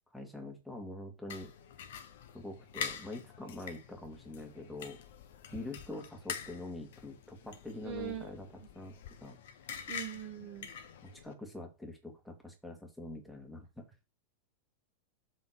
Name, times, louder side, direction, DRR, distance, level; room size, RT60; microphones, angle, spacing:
voice 1, 0.1-1.5 2.3-5.0 5.5-8.5 8.7-8.9 9.2-9.4 11.0-13.9, left 2 dB, ahead, 1 dB, 2.0 m, -44 dB
sound 1, 1.3-11.3, left 7 dB, 60° left, 1.0 m, -45 dB
voice 2, 7.8-8.3 9.9-10.7, right 8 dB, 40° right, 5 dB, 1.4 m, -41 dB
7.8 x 3.7 x 5.8 m, 0.27 s
figure-of-eight pair, 90°, 0 cm